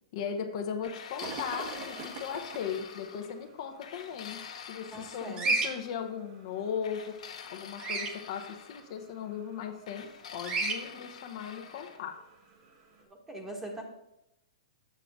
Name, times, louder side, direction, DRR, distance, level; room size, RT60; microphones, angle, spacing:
voice 1, 0.1-12.3, left 7 dB, 55° left, 4 dB, 0.8 m, -38 dB
sound 1, 0.8-3.3 3.8-5.8 6.8-8.9 9.9-12.0, left 7 dB, 75° left, 1.0 m, -46 dB
sound 2, 1.2-13.0, right 3 dB, 45° right, 1.3 m, -49 dB
voice 2, 4.9-5.5 13.3-13.8, right 1 dB, 10° right, 1 dB, 1.3 m, -41 dB
Bird vocalization bird call bird song, 5.4-5.7 7.8-8.1 10.4-10.8, right 3 dB, 25° right, 1.0 m, -29 dB
7.3 x 6.7 x 3.6 m, 0.85 s
hypercardioid pair, 140°, 4 cm